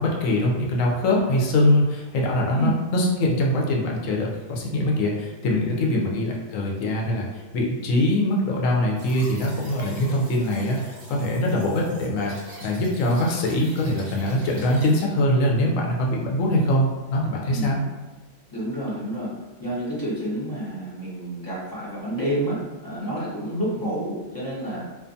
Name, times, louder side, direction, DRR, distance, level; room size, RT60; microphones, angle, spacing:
voice 1, 0.0-12.4 12.6-17.8, left 1 dB, 80° left, -1 dB, 1.0 m, -23 dB
sound 1, 9.0-15.0, right 1 dB, 50° right, 0.9 m, -45 dB
voice 2, 17.5-17.9 18.5-19.3 19.6-24.8, right 1 dB, 25° left, -9 dB, 0.5 m, -29 dB
2.5 x 2.3 x 2.5 m, 1.2 s
omnidirectional pair, 1.4 m